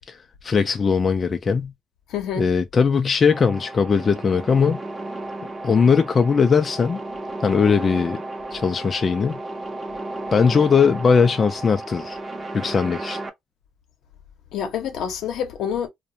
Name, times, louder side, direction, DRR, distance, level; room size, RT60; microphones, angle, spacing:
voice 1, 0.1-1.7 2.4-4.8 5.6-7.0 7.4-8.2 8.5-9.4 10.3-12.2 12.5-13.2, left 5 dB, 40° left, 0.3 m, -19 dB
voice 2, 2.1-2.5 14.5-15.9, left 8 dB, 80° left, 0.7 m, -27 dB
sound 1, 3.3-13.3, right 2 dB, 25° right, 0.6 m, -34 dB
2.4 x 2.1 x 2.7 m
cardioid pair, 90°, 0 cm